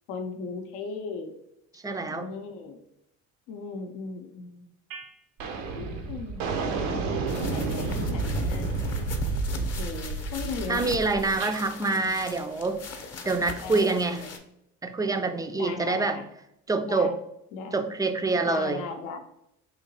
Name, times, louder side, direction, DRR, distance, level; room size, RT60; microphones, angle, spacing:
voice 1, 0.1-1.3 2.0-2.8 3.5-4.7 5.7-7.0 7.3-8.8 9.5-10.9 11.9-12.2 13.6-14.3 15.5-16.3 16.8-17.2 17.5-17.8 18.4-19.2, left 4 dB, 75° left, 4 dB, 0.6 m, -37 dB
voice 2, 1.8-2.3 10.7-12.8 13.3-14.2 14.8-16.2 16.7-17.1 17.7-18.8, right 3 dB, 10° right, 7 dB, 0.3 m, -26 dB
sound 1, 4.9-5.1 5.4-11.6, right 3 dB, 85° right, 0.6 m, -30 dB
sound 2, 7.3-14.4, left 4 dB, 40° left, 0.7 m, -40 dB
3.8 x 2.8 x 2.7 m, 0.80 s
hypercardioid pair, 60°, 38 cm